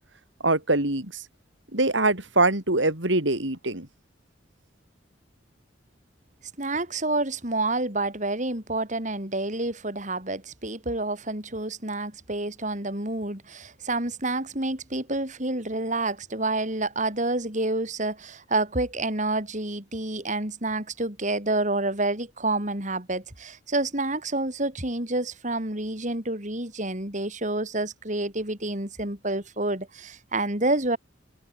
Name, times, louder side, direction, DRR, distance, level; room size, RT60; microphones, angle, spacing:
voice 1, 0.4-1.2 1.7-3.9, right 2 dB, 80° right, 5.6 m, -23 dB
voice 2, 6.6-31.0, right 2 dB, 40° right, 5.2 m, -28 dB
head